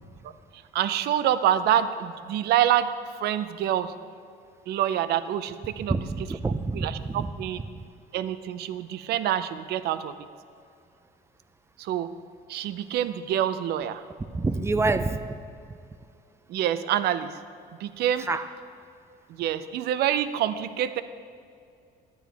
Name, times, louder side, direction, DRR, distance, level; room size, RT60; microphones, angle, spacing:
voice 1, 0.7-2.9 3.2-3.9 4.7-5.9 6.7-7.6 8.1-10.1 11.8-12.1 12.5-14.0 16.5-17.3 17.8-18.3 19.4-21.0, right 11 dB, 75° right, 12 dB, 0.5 m, -26 dB
voice 2, 5.8-7.7 14.3-15.4 18.2-18.5, right 3 dB, 15° right, 11 dB, 0.4 m, -28 dB
12.5 x 9.2 x 3.5 m, 2.4 s
cardioid pair, 110°, 17 cm